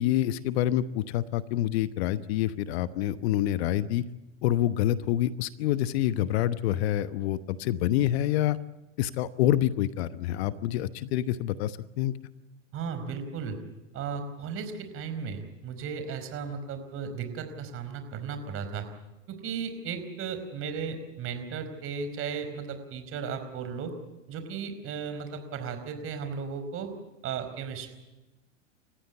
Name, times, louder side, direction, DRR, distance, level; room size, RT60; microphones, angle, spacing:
voice 1, 0.0-4.0 4.4-8.6 9.0-12.1, left 13 dB, 55° left, 14 dB, 1.1 m, -27 dB
voice 2, 12.7-13.6 13.9-18.9 19.3-23.9 24.3-26.9 27.2-27.9, right 6 dB, 35° right, 8 dB, 4.7 m, -35 dB
29.5 x 15.0 x 8.1 m, 1.0 s
hypercardioid pair, 105°, 39 cm